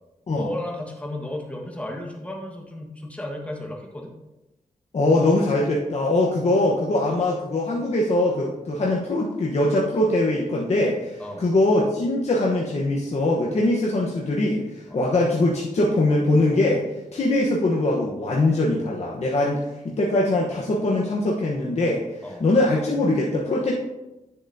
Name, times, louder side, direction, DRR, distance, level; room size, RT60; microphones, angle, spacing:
voice 1, 0.3-4.1 11.2-11.5 14.9-15.0 22.2-22.4, left 1 dB, 10° left, 0 dB, 1.5 m, -34 dB
voice 2, 4.9-16.8 17.1-23.7, left 2 dB, 50° left, -3 dB, 1.1 m, -22 dB
9.9 x 7.1 x 2.8 m, 1.0 s
wide cardioid pair, 105°, 14 cm